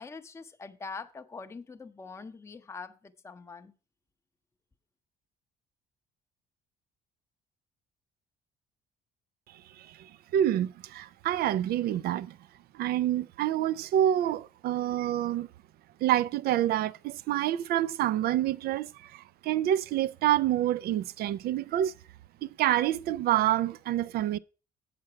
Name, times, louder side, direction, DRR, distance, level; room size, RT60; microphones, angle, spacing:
voice 1, 0.0-3.7, left 4 dB, 15° left, 0.6 m, -43 dB
voice 2, 9.8-12.4 12.7-15.5 16.0-21.9 22.4-24.4, right 12 dB, 65° right, 0.4 m, -27 dB
7.6 x 6.0 x 5.6 m
cardioid pair, 110°, 17 cm